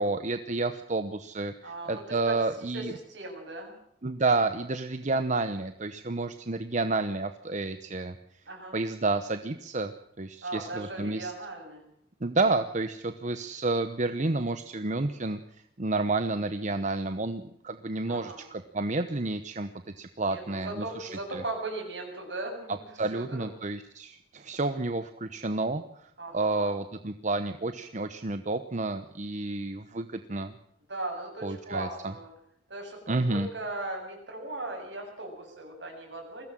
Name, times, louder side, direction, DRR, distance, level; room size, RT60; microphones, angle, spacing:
voice 1, 0.0-2.9 4.0-8.2 8.7-11.3 12.2-15.4 15.8-19.7 20.0-21.4 23.0-30.5 31.4-32.1 33.1-33.5, right 3 dB, 40° right, 9 dB, 1.0 m, -30 dB
voice 2, 1.6-2.4 2.7-2.8 3.1-3.7 8.5-8.8 10.4-11.9 18.1-18.4 20.2-22.7 23.1-23.5 26.2-26.7 30.9-32.3 32.7-36.4, right 2 dB, 70° right, 2 dB, 7.7 m, -38 dB
21.5 x 16.5 x 7.6 m, 0.74 s
head